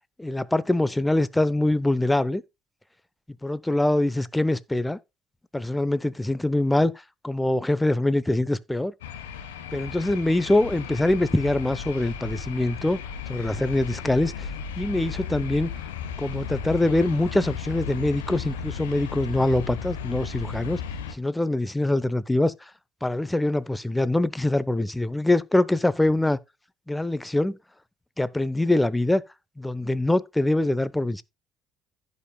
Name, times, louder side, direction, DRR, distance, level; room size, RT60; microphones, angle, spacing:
voice 1, 0.2-2.4 3.4-5.0 5.5-6.9 7.2-8.9 9.7-13.0 13.3-14.5 14.8-15.7 16.2-20.8 21.1-22.5 23.0-26.4 26.9-27.6 28.2-29.2 29.6-31.2, left 1 dB, 10° left, 0.7 m, -24 dB
sound 1, 9.0-21.1, left 7 dB, 80° left, 1.1 m, -35 dB
15.5 x 5.3 x 2.3 m
figure-of-eight pair, 55°, 0 cm